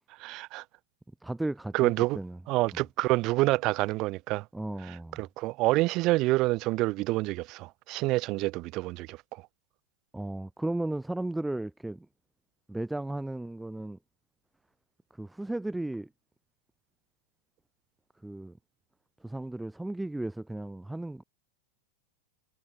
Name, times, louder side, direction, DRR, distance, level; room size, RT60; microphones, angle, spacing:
voice 1, 0.2-0.6 1.7-2.2 2.5-4.4 5.2-9.2, right 20 dB, 40° right, 0.5 m, -27 dB
voice 2, 1.2-2.4 2.7-2.8 4.5-5.2 10.1-12.1 12.7-14.0 15.1-16.1 18.2-18.6 19.2-21.2, right 2 dB, 5° right, 1.1 m, -35 dB
figure-of-eight pair, 90°, 0 cm